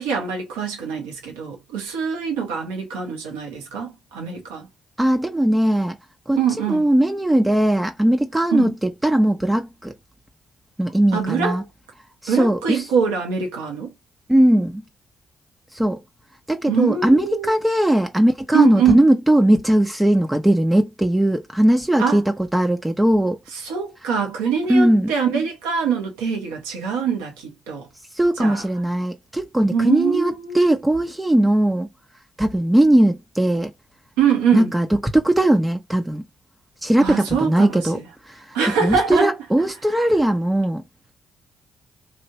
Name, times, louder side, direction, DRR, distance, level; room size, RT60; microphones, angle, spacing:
voice 1, 0.0-4.7 6.4-6.8 8.5-8.7 11.1-11.6 12.3-13.9 16.7-17.5 18.5-19.0 22.0-22.2 23.6-27.9 28.4-28.6 29.7-30.6 34.2-34.7 37.0-38.0 38.5-39.3, right 7 dB, 85° right, 1.0 m, -23 dB
voice 2, 5.0-6.0 6.3-9.9 10.8-11.6 12.2-12.9 14.3-14.8 15.7-16.0 16.5-23.4 24.7-25.1 28.1-31.9 32.4-33.7 34.5-36.3 36.8-40.8, right 1 dB, 10° right, 0.7 m, -19 dB
3.1 x 2.5 x 2.9 m
hypercardioid pair, 45°, 0 cm